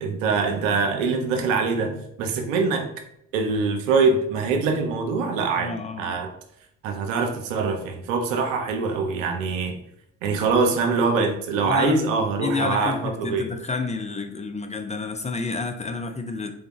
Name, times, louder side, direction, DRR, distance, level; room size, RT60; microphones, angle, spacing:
voice 1, 0.0-2.9 3.3-5.7 6.0-6.3 6.8-9.8 10.2-13.5, right 4 dB, 75° right, 5 dB, 0.7 m, -23 dB
voice 2, 5.6-6.2 11.7-12.0 12.4-16.5, left 4 dB, 20° left, 6 dB, 0.4 m, -29 dB
3.8 x 3.5 x 3.0 m, 0.73 s
figure-of-eight pair, 50°, 39 cm